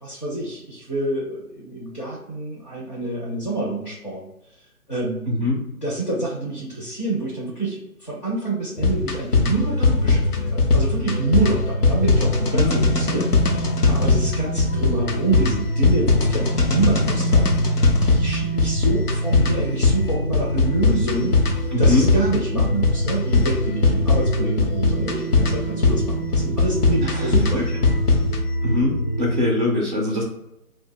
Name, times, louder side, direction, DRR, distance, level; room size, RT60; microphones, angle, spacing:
voice 1, 0.0-4.3 4.9-5.2 5.8-27.6, right 2 dB, 30° left, -5 dB, 0.4 m, -27 dB
voice 2, 5.3-5.6 12.5-12.8 21.7-22.1 27.1-27.7 28.6-30.2, left 1 dB, 35° right, -3 dB, 0.4 m, -22 dB
sound 1, 8.8-28.4, left 3 dB, 85° left, 0.8 m, -20 dB
sound 2, 9.6-29.5, right 1 dB, 70° left, 1.1 m, -27 dB
2.5 x 2.1 x 3.4 m, 0.86 s
figure-of-eight pair, 140°, 44 cm